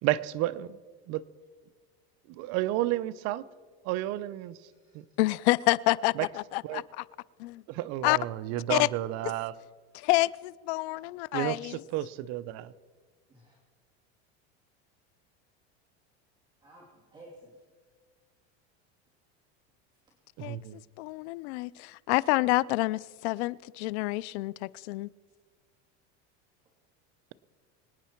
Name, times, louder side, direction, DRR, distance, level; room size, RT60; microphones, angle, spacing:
voice 1, 0.0-0.8 1.1-1.2 2.3-3.5 3.8-4.6 4.9-5.0 6.6-6.8 7.7-9.5 11.3-12.7 20.4-20.8, right 15 dB, 50° right, 16 dB, 0.6 m, -31 dB
voice 2, 4.5-5.0 13.3-13.6 16.6-17.6, right 1 dB, 15° right, -4 dB, 2.7 m, -54 dB
voice 3, 5.2-7.0 7.4-7.6 8.0-8.2 8.7-8.9 9.2-9.3 9.9-11.8 20.4-20.6 21.0-25.1, left 20 dB, 75° left, 22 dB, 0.5 m, -28 dB
24.5 x 9.3 x 4.5 m, 1.5 s
supercardioid pair, 140°, 33 cm